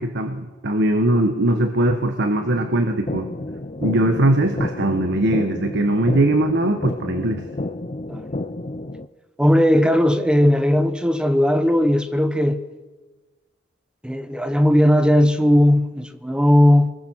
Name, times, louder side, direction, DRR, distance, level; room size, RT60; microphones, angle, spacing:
voice 1, 0.0-3.3 3.8-7.5, right 1 dB, 60° right, 1.4 m, -20 dB
sound 1, 3.1-9.1, left 2 dB, 30° left, 0.7 m, -30 dB
voice 2, 9.4-12.6 14.0-16.9, left 1 dB, 5° right, 1.2 m, -17 dB
28.0 x 20.0 x 6.4 m
head